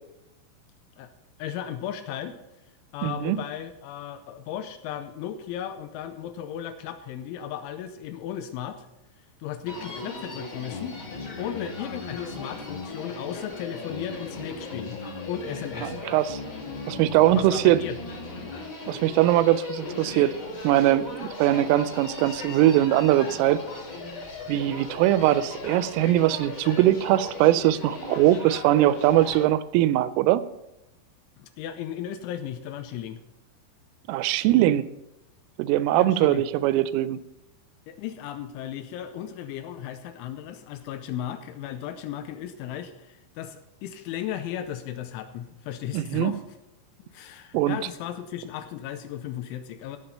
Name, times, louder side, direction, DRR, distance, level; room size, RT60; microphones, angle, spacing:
voice 1, 1.4-2.4 2.9-8.9 9.4-15.0 15.3-16.0 17.3-18.0 31.4-33.2 35.9-36.4 37.9-46.4 47.1-50.0, left 10 dB, 80° left, 9 dB, 2.9 m, -35 dB
voice 2, 3.0-3.4 15.8-16.4 16.9-17.8 18.9-20.4 20.6-23.6 24.5-30.4 34.1-34.9 35.6-37.2 45.9-46.3 47.5-47.8, right 14 dB, 85° right, 15 dB, 3.1 m, -21 dB
Human voice, 9.7-29.5, left 3 dB, 35° left, 2.3 m, -37 dB
17.0 x 5.8 x 5.5 m, 0.91 s
omnidirectional pair, 5.8 m